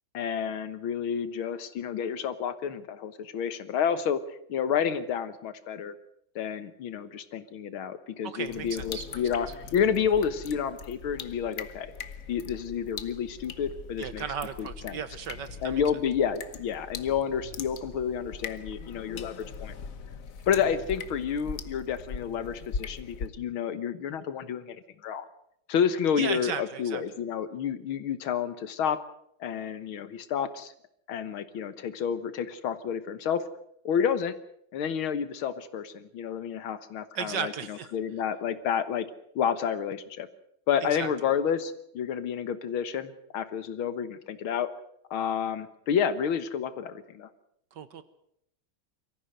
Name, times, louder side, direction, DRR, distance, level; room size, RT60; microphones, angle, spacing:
voice 1, 0.1-4.2 4.5-6.0 6.4-11.9 12.3-14.2 14.6-15.0 15.6-19.7 20.5-25.3 25.7-29.0 29.4-30.7 31.1-33.4 33.9-34.4 34.7-39.1 39.4-40.3 40.7-44.7 45.1-47.3, left 7 dB, 75° left, 13 dB, 2.0 m, -30 dB
voice 2, 8.2-9.2 14.0-15.8 26.2-27.0 37.1-37.9 40.9-41.1 47.7-48.0, right 7 dB, 60° right, 13 dB, 1.5 m, -35 dB
sound 1, 8.4-23.3, left 5 dB, 45° left, 1.3 m, -41 dB
23.0 x 14.5 x 7.8 m, 0.73 s
omnidirectional pair, 2.3 m